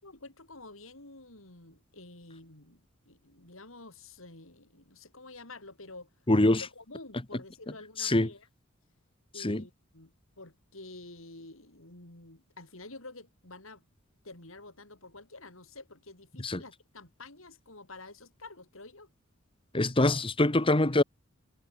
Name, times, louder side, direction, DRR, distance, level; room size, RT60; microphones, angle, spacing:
voice 1, 0.0-6.1 6.5-8.5 9.3-13.8 14.2-19.1, left 2 dB, 70° left, 5.9 m, -49 dB
voice 2, 6.3-6.6 8.0-8.3 9.4-9.6 16.4-16.6 19.7-21.0, left 1 dB, 25° left, 1.3 m, -24 dB
head